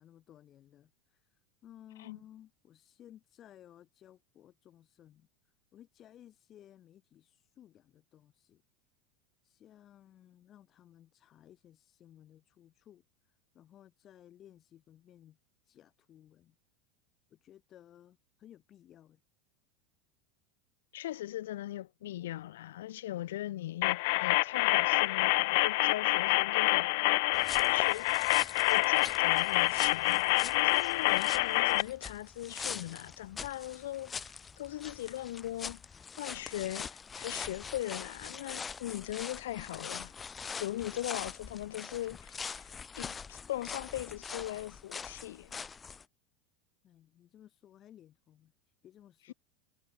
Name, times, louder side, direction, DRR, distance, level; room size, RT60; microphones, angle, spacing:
voice 1, 0.0-8.6 9.4-15.4 15.6-16.6 17.3-19.2 46.8-48.5 48.8-49.3, left 11 dB, 35° left, 3.9 m, -58 dB
voice 2, 20.9-27.2 27.6-28.1 28.4-35.8 36.2-40.1 40.6-42.7 43.0-45.6, left 14 dB, 90° left, 1.9 m, -40 dB
sound 1, 23.8-31.8, left 26 dB, 65° left, 0.3 m, -27 dB
sound 2, 27.3-46.0, left 5 dB, 20° left, 1.8 m, -43 dB
supercardioid pair, 135°, 0 cm